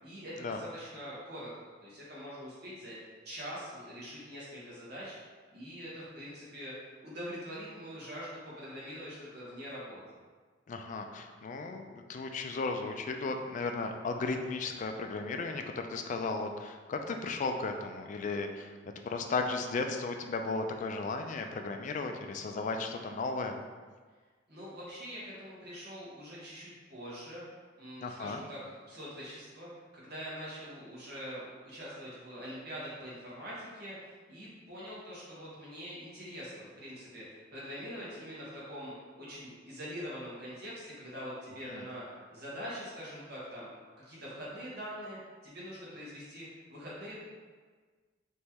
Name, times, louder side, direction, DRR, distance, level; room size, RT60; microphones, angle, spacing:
voice 1, 0.0-1.5 1.8-3.0 3.2-5.2 5.5-10.0 24.5-27.4 27.8-28.6 28.8-43.7 44.0-47.2, equal, 55° right, -7 dB, 1.2 m, -44 dB
voice 2, 10.7-18.7 19.0-23.6 28.0-28.4 41.7-41.8, left 3 dB, 40° left, 5 dB, 0.3 m, -35 dB
3.6 x 3.1 x 2.9 m, 1.5 s
head